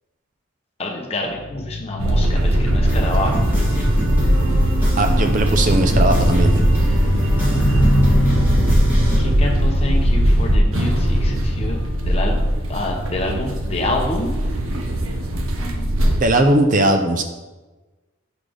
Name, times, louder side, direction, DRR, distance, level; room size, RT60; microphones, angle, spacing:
voice 1, 0.8-3.4 9.2-11.8 12.0-14.4, left 2 dB, 30° left, 0 dB, 0.7 m, -27 dB
sound 1, 1.2-12.9 13.6-13.9, left 1 dB, 85° left, 0.7 m, -27 dB
sound 2, 2.0-16.2, equal, 85° right, 0.7 m, -19 dB
sound 3, 2.8-9.2, equal, 10° right, 1.5 m, -26 dB
voice 2, 5.0-6.5 16.1-17.2, right 1 dB, 40° right, 6 dB, 0.5 m, -18 dB
4.9 x 4.1 x 5.0 m, 1.2 s
head